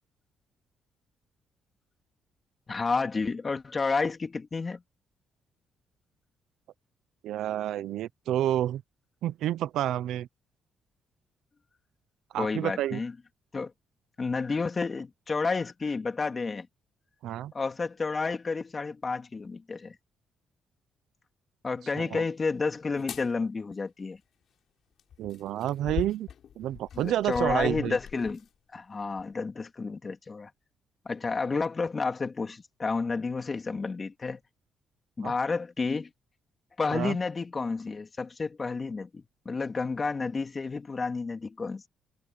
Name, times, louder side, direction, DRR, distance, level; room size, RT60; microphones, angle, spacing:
voice 1, 2.7-4.8 12.4-13.1 13.5-13.7 14.2-16.7 17.5-19.9 21.6-24.2 26.9-28.4 28.7-30.5 31.0-34.4 35.2-36.1 36.8-41.9, left 4 dB, 30° left, 3.0 m, -30 dB
voice 2, 7.2-8.8 9.2-10.3 12.3-13.0 17.2-17.5 22.0-22.2 25.2-26.3 26.6-28.0 35.2-35.3 36.9-37.2, right 12 dB, 80° right, 0.7 m, -29 dB
sound 1, 22.9-23.3 25.0-28.5 29.2-29.3, left 8 dB, 60° left, 6.8 m, -41 dB
cardioid pair, 90°, 0 cm